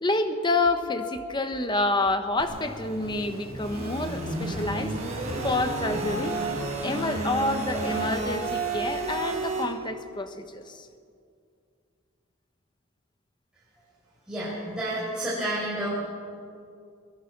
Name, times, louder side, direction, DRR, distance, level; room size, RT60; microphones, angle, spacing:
voice 1, 0.0-4.9 5.4-6.4 6.8-10.9, left 2 dB, 20° left, 8 dB, 1.2 m, -28 dB
sound 1, 2.4-9.6, right 2 dB, 30° right, 5.0 m, -31 dB
voice 2, 14.3-15.9, right 1 dB, 5° right, -9 dB, 5.0 m, -30 dB
22.5 x 20.5 x 6.1 m, 2.3 s
head